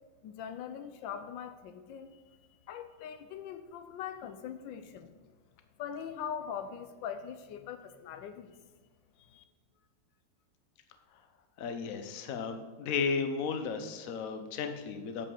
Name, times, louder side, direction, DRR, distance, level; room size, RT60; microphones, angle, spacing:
voice 1, 0.2-2.4 2.7-5.1 5.8-8.6 9.2-9.4, left 8 dB, 80° left, 9 dB, 1.3 m, -42 dB
voice 2, 11.6-15.3, left 5 dB, 55° left, 7 dB, 1.1 m, -34 dB
8.7 x 5.3 x 7.0 m, 1.3 s
omnidirectional pair, 2.0 m